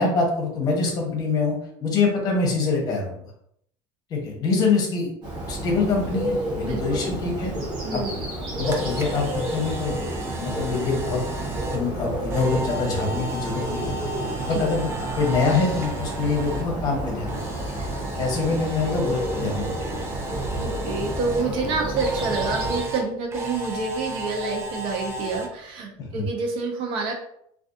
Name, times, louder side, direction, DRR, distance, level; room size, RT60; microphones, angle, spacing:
voice 1, 0.0-3.2 4.1-5.1 5.5-7.5 7.9-8.0 8.6-10.0 10.2-11.2 11.7-13.9 14.5-14.9 15.2-17.4 18.2-19.9 26.0-26.2, left 4 dB, 40° left, 1 dB, 0.8 m, -25 dB
Bird, 5.2-22.8, right 1 dB, 45° right, 1.1 m, -30 dB
voice 2, 6.6-7.1 7.8-8.2 14.3-14.6 20.5-27.1, right 4 dB, 65° right, 1 dB, 0.6 m, -28 dB
Camera, 8.3-16.6 16.9-21.4 21.9-25.5, right 2 dB, 25° right, 0.5 m, -35 dB
2.5 x 2.4 x 2.4 m, 0.71 s
cardioid pair, 130°, 10 cm